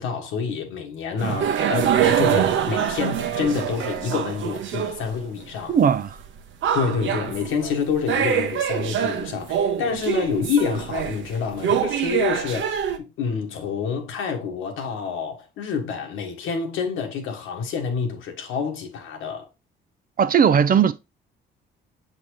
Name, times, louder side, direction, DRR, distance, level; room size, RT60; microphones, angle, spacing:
voice 1, 0.0-5.8 6.7-19.5, left 6 dB, 85° left, 1.5 m, -28 dB
sound 1, 1.2-5.2 5.6-5.7 6.1-6.2 6.6-7.8 8.1-13.0, right 9 dB, 75° right, 0.9 m, -24 dB
voice 2, 5.7-6.2 20.2-20.9, right 7 dB, 45° right, 0.6 m, -18 dB
7.3 x 4.1 x 3.2 m
cardioid pair, 90°, 20 cm